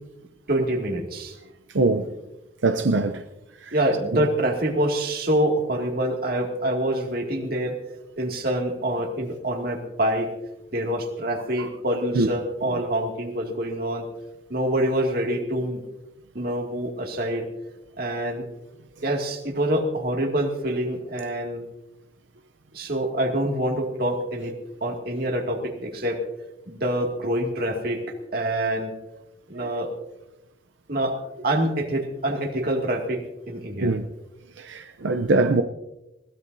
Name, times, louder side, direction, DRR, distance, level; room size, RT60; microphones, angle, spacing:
voice 1, 0.5-1.4 3.7-7.7 8.2-10.3 10.7-14.0 14.5-15.8 16.3-17.5 18.0-18.4 19.0-21.6 22.7-24.5 24.8-26.2 26.7-28.0 28.3-28.9 29.5-29.9 30.9-31.1 31.4-33.2 33.5-33.9, right 1 dB, 55° right, 2.3 m, -26 dB
voice 2, 1.7-2.1 2.6-3.2 3.7-3.8 12.2-12.3 33.8-34.0 34.6-35.6, right 3 dB, 85° right, 0.6 m, -22 dB
21.0 x 17.0 x 2.7 m
head